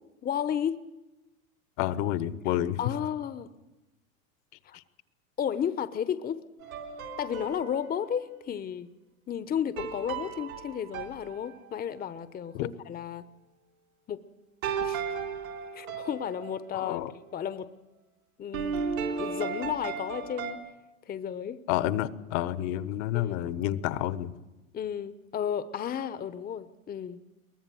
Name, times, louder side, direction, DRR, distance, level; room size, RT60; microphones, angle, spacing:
voice 1, 0.2-0.8 2.8-3.5 4.6-4.8 5.4-6.4 7.2-8.9 9.3-13.3 14.1-14.2 14.8-15.0 15.7-17.0 17.3-17.7 18.4-18.8 19.2-20.6 21.1-21.6 23.1-23.4 24.7-27.2, left 8 dB, 20° left, 14 dB, 0.9 m, -33 dB
voice 2, 1.8-2.8 4.7-4.8 12.5-12.7 16.7-17.1 21.7-24.4, left 13 dB, 55° left, 15 dB, 1.4 m, -29 dB
sound 1, 6.6-8.1 9.8-12.0 14.6-16.7 18.5-20.5, right 6 dB, 75° right, 3.7 m, -35 dB
23.0 x 20.0 x 7.8 m, 1.1 s
hypercardioid pair, 100°, 42 cm